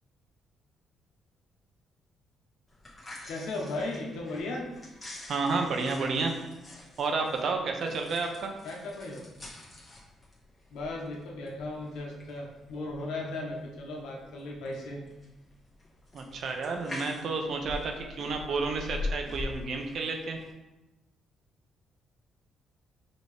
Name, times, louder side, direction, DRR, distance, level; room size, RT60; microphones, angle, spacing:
sound 1, 2.7-20.5, left 2 dB, 25° left, 1.5 m, -44 dB
voice 1, 3.3-4.7 8.6-9.3 10.7-15.0, left 2 dB, 80° left, -1 dB, 1.0 m, -36 dB
voice 2, 5.3-6.3 7.0-8.5 16.1-20.4, right 4 dB, 60° right, 3 dB, 0.7 m, -31 dB
5.2 x 3.0 x 3.4 m, 1.0 s
cardioid pair, 90°, 0 cm